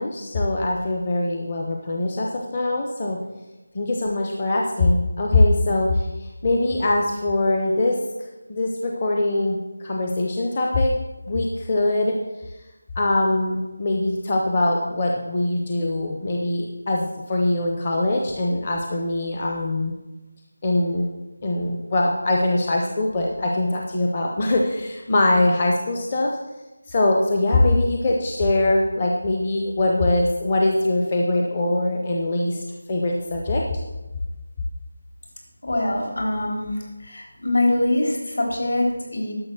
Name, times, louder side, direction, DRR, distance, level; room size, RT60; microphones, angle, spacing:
voice 1, 0.0-3.2 3.7-8.0 8.5-10.9 11.3-12.1 13.0-19.9 20.6-21.1 21.4-26.3 26.9-33.8, left 2 dB, 20° left, 0 dB, 0.6 m, -22 dB
voice 2, 35.6-36.7 37.0-39.3, left 1 dB, 65° left, 0 dB, 3.7 m, -23 dB
11.0 x 6.5 x 6.2 m, 1.1 s
figure-of-eight pair, 180°, 0 cm